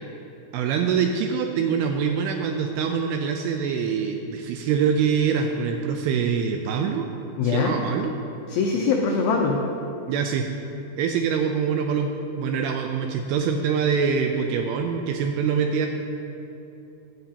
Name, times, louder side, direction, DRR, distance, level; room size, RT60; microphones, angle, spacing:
voice 1, 0.5-7.1 7.4-8.1 10.1-10.5 11.0-15.9, right 6 dB, 85° right, 4 dB, 2.3 m, -24 dB
voice 2, 7.4-7.7 8.5-9.6, left 5 dB, 85° left, 0 dB, 2.1 m, -22 dB
15.5 x 10.0 x 2.8 m, 2.9 s
omnidirectional pair, 5.1 m